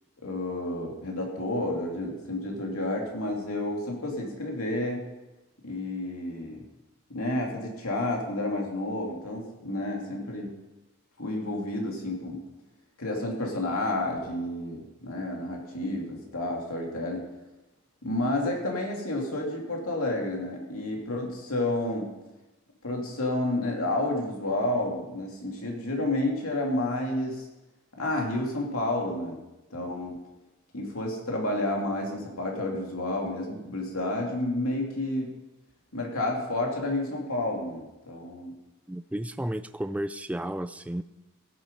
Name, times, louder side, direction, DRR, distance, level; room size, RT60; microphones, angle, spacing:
voice 1, 0.2-5.0 5.6-6.6 7.1-10.5 11.2-12.4 13.0-17.2 18.0-22.1 22.8-27.4 28.0-29.4 29.7-30.2 30.7-35.3 35.9-38.5, left 1 dB, 80° left, 0 dB, 2.8 m, -30 dB
voice 2, 38.9-41.0, right 1 dB, 5° right, 11 dB, 0.3 m, -32 dB
16.0 x 7.9 x 5.4 m, 1.0 s
head